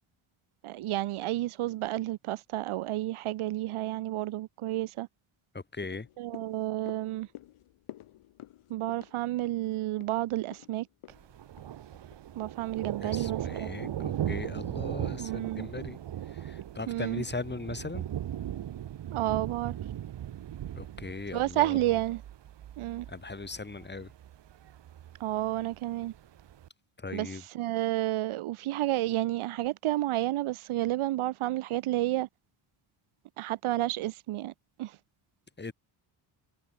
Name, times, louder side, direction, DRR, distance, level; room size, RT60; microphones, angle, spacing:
voice 1, 0.6-5.1 6.2-7.3 8.7-10.9 12.3-13.7 15.2-15.7 16.9-17.2 19.1-19.8 21.3-22.2 22.8-23.1 25.2-26.1 27.1-27.3 27.5-32.3 33.4-34.5 34.8-35.0, right 15 dB, 85° right, 1.4 m, -31 dB
voice 2, 5.5-6.1 13.0-16.0 16.3-18.1 20.7-21.9 23.1-24.1 27.0-27.4 35.6-35.7, left 3 dB, 20° left, 5.0 m, -39 dB
sound 1, 5.8-12.3 12.6-12.7, left 14 dB, 85° left, 3.2 m, -51 dB
Thunder, 11.1-26.7, right 11 dB, 60° right, 1.8 m, -38 dB
cardioid pair, 120°, 48 cm